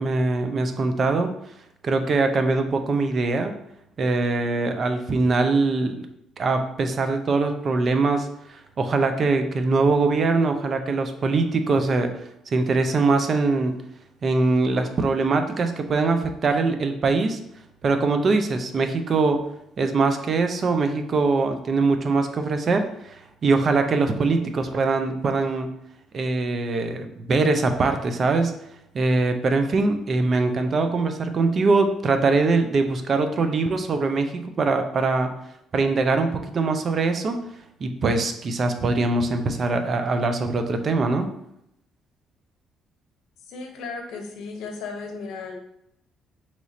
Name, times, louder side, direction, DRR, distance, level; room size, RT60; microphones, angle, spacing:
voice 1, 0.0-1.3 1.8-3.5 4.0-6.1 6.4-12.1 12.5-13.8 14.2-17.4 17.8-19.4 19.8-25.7 26.1-28.5 28.9-35.3 35.7-37.4 37.8-41.3, right 3 dB, 45° right, 7 dB, 0.4 m, -22 dB
voice 2, 43.5-45.6, left 4 dB, 80° left, 3 dB, 0.6 m, -35 dB
3.0 x 2.4 x 4.1 m, 0.78 s
cardioid pair, 90°, 0 cm